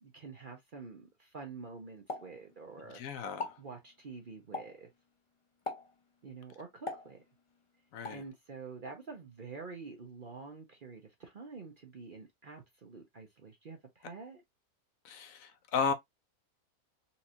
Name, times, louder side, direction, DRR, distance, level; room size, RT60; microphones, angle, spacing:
voice 1, 0.0-3.0 3.6-4.9 6.2-7.2 8.1-14.4, right 4 dB, 45° right, 0.7 m, -47 dB
Explosion, 2.1-3.0 3.3-3.7 4.5-4.9 5.7-6.0 6.9-7.6 8.1-8.3, left 3 dB, 45° left, 0.4 m, -41 dB
voice 2, 2.9-3.5 7.9-8.2 15.0-15.9, left 6 dB, 70° left, 0.9 m, -34 dB
4.2 x 2.5 x 2.6 m
omnidirectional pair, 1.6 m